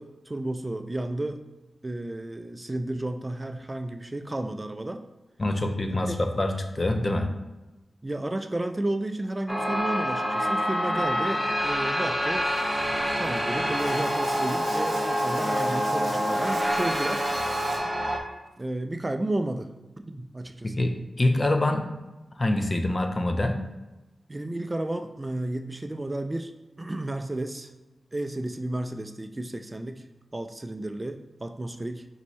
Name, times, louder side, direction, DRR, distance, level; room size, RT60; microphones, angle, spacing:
voice 1, 0.0-1.4 1.8-5.0 6.1-6.2 8.0-12.5 12.8-17.3 18.6-20.7 24.3-26.5 26.8-27.7 28.1-30.1 30.3-32.1, right 1 dB, 30° right, 8 dB, 0.3 m, -32 dB
voice 2, 5.4-7.3 20.6-21.9 22.4-23.6, left 1 dB, 40° left, 5 dB, 0.5 m, -25 dB
sound 1, 9.5-18.2, equal, 5° left, 0.7 m, -26 dB
Bathtub (filling or washing), 12.4-17.8, right 2 dB, 85° right, 0.6 m, -42 dB
5.3 x 2.7 x 3.1 m, 1.1 s
cardioid pair, 50°, 0 cm